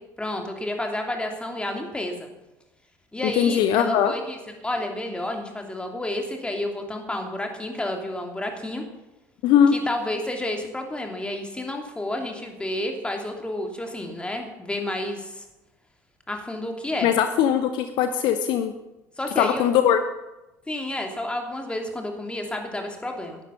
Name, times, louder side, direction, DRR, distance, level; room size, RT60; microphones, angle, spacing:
voice 1, 0.2-2.3 3.1-4.4 4.6-8.8 9.7-15.4 16.3-17.1 19.2-19.7 20.7-23.4, left 1 dB, 10° left, 3 dB, 2.8 m, -30 dB
voice 2, 3.2-4.1 9.4-9.8 17.0-18.7 19.4-20.0, left 9 dB, 55° left, 9 dB, 0.9 m, -20 dB
14.0 x 11.0 x 5.8 m, 0.98 s
figure-of-eight pair, 60°, 10 cm